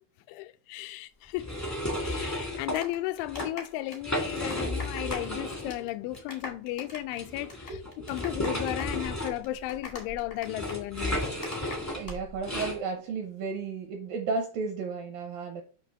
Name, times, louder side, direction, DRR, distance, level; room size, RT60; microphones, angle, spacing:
voice 1, 0.3-1.5 2.0-7.7 8.0-11.2, left 15 dB, 85° left, 2.9 m, -35 dB
sound 1, 1.4-2.8 3.2-3.5 3.9-5.8 6.1-6.2 7.2-12.8, left 1 dB, 25° left, 0.3 m, -33 dB
sound 2, 2.4-5.4 5.6-5.9 6.1-12.2 12.4-12.7, left 3 dB, 70° left, 0.7 m, -42 dB
voice 2, 7.7-8.3 12.0-15.6, right 4 dB, 75° right, 2.1 m, -34 dB
8.5 x 3.0 x 6.1 m
omnidirectional pair, 5.3 m